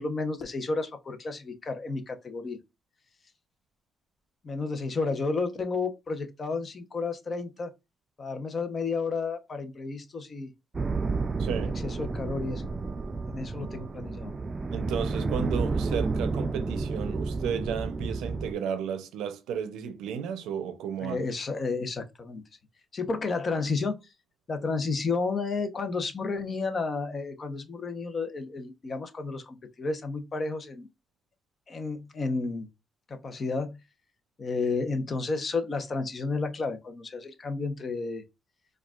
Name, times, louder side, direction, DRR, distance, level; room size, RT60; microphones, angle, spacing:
voice 1, 0.0-2.6 4.4-7.7 8.2-10.5 11.8-14.3 21.0-22.4 22.9-24.0 24.5-30.9 31.7-32.7 33.1-33.8 34.4-38.2, left 4 dB, 40° left, 0.8 m, -32 dB
sound 1, 10.7-18.5, right 3 dB, 30° right, 0.4 m, -31 dB
voice 2, 11.4-11.8 14.7-21.2, right 7 dB, 90° right, 0.6 m, -33 dB
4.5 x 2.4 x 2.4 m
cardioid pair, 90°, 0 cm